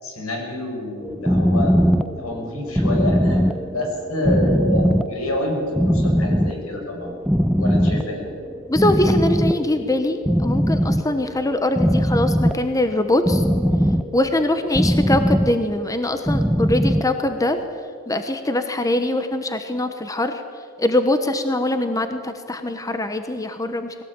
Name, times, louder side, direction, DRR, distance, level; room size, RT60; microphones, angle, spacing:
voice 1, 0.0-7.1 7.6-8.3, left 1 dB, 85° left, 1 dB, 6.4 m, -27 dB
sound 1, 1.0-17.7, equal, ahead, 0.5 m, -21 dB
voice 2, 8.7-13.4 14.1-17.6 18.1-20.4 20.8-23.9, left 1 dB, 15° left, 8 dB, 1.0 m, -22 dB
21.5 x 17.0 x 8.9 m, 2.3 s
head